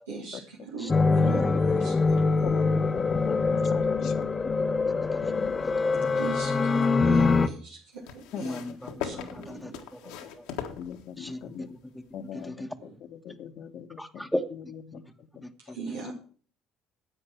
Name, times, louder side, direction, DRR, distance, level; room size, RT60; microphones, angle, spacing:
voice 1, 0.1-2.6 5.8-8.5 9.0-9.8 15.7-16.1, right 4 dB, 90° right, -5 dB, 3.4 m, -40 dB
voice 2, 0.8-2.0 2.7-2.8 4.8-5.7 6.0-6.1 8.4-10.5 11.2-12.0 12.3-12.8 14.0-15.0 15.4-16.1, left 1 dB, 5° left, 5 dB, 1.3 m, -39 dB
sound 1, 0.9-7.5, left 4 dB, 30° left, 0.9 m, -24 dB
voice 3, 2.4-4.3 4.9-5.8 8.3-9.6 10.7-11.7 12.1-12.5 13.1-14.3 14.9-15.4, left 8 dB, 60° left, 10 dB, 1.3 m, -41 dB
sound 2, 6.1-6.9 8.0-11.5 12.4-12.5, left 9 dB, 75° left, 1.5 m, -40 dB
10.5 x 8.0 x 5.8 m, 0.42 s
hypercardioid pair, 60°, 0 cm